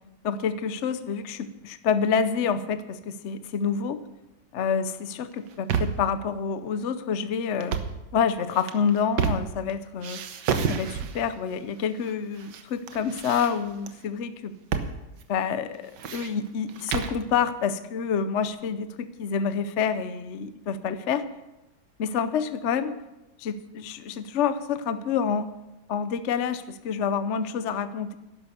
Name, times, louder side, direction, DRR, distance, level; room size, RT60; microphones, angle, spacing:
voice 1, 0.2-4.0 4.5-7.8 8.1-10.2 10.7-14.6 15.3-21.2 22.0-23.0 23.4-25.6 25.9-28.1, left 6 dB, 55° left, 12 dB, 0.8 m, -28 dB
sound 1, 5.3-6.1 7.6-8.0 8.5-9.7 10.0-11.3 12.0-12.6 12.9-13.9 14.7-15.0 15.2-15.3 15.7-17.2, right 6 dB, 75° right, 1.6 m, -30 dB
12.0 x 11.0 x 6.8 m, 0.97 s
omnidirectional pair, 1.9 m